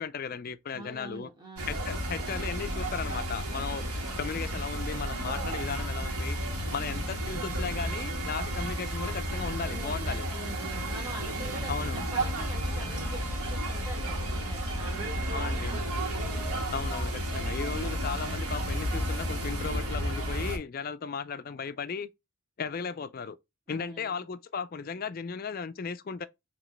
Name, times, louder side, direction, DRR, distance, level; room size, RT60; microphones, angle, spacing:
voice 1, 0.0-1.3 1.7-3.9 4.2-6.4 6.7-10.3 11.7-12.0 15.3-15.7 16.7-22.1 22.6-23.4 23.7-26.3, left 6 dB, 40° left, 0.4 m, -36 dB
voice 2, 0.7-1.7 9.5-11.8 12.1-15.8 23.7-24.3, right 1 dB, 20° right, 2.0 m, -44 dB
sound 1, 1.6-20.6, equal, 80° right, 1.7 m, -32 dB
5.0 x 2.9 x 3.2 m
head